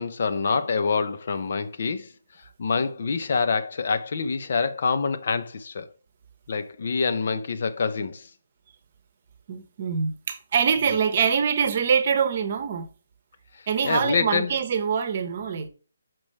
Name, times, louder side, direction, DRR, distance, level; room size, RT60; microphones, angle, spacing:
voice 1, 0.0-2.1 2.6-5.9 6.5-8.3 13.8-14.6, left 5 dB, 50° left, 0.7 m, -26 dB
voice 2, 9.5-12.9 13.7-15.7, right 6 dB, 40° right, 0.9 m, -24 dB
6.2 x 6.0 x 3.2 m
figure-of-eight pair, 145°, 0 cm